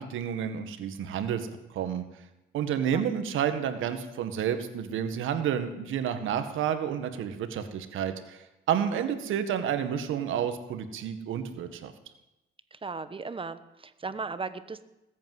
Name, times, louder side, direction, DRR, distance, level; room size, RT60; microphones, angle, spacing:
voice 1, 0.0-2.0 2.5-11.9, right 8 dB, 80° right, 9 dB, 1.8 m, -30 dB
voice 2, 12.7-14.8, right 4 dB, 25° right, 13 dB, 1.2 m, -37 dB
20.0 x 8.7 x 8.0 m, 0.94 s
cardioid pair, 90°, 20 cm